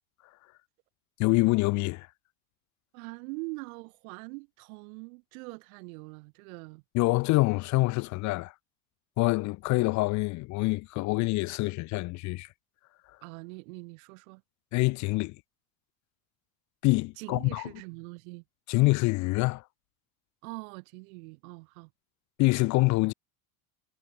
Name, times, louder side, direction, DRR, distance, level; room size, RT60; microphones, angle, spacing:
voice 1, 1.2-2.1 6.9-8.5 9.2-12.5 14.7-15.4 16.8-17.7 18.7-19.6 22.4-23.1, left 23 dB, 45° left, 0.5 m, -26 dB
voice 2, 2.9-6.8 13.2-14.4 17.2-18.4 20.4-21.9, right 30 dB, 75° right, 2.2 m, -43 dB
supercardioid pair, 135°, 42 cm